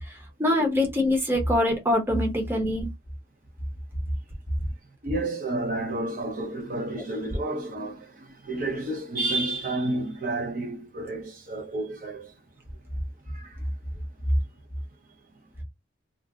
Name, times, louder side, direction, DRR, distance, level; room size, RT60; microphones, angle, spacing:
voice 1, 0.4-2.9 7.3-7.4, left 1 dB, 15° right, 0.8 m, -24 dB
voice 2, 5.0-12.3 13.3-13.6, right 2 dB, 50° right, 0.7 m, -31 dB
2.6 x 2.1 x 3.5 m
head